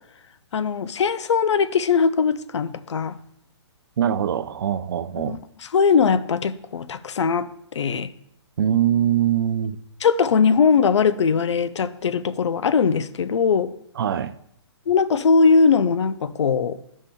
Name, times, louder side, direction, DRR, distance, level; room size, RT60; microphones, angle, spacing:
voice 1, 0.5-3.2 5.2-5.4 5.7-8.1 10.0-13.7 14.9-16.8, left 5 dB, 85° left, 0.5 m, -20 dB
voice 2, 4.0-5.4 8.6-9.8 14.0-14.3, right 10 dB, 55° right, 0.4 m, -22 dB
13.5 x 5.5 x 2.2 m
hypercardioid pair, 165°, 14 cm